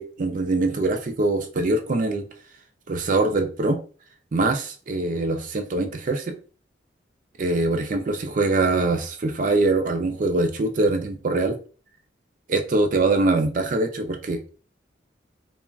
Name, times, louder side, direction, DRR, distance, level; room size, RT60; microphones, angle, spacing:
voice 1, 0.0-2.2 2.9-3.8 4.3-6.4 7.4-11.6 12.5-14.4, right 2 dB, 45° right, 6 dB, 0.4 m, -23 dB
3.5 x 2.1 x 2.3 m, 0.38 s
head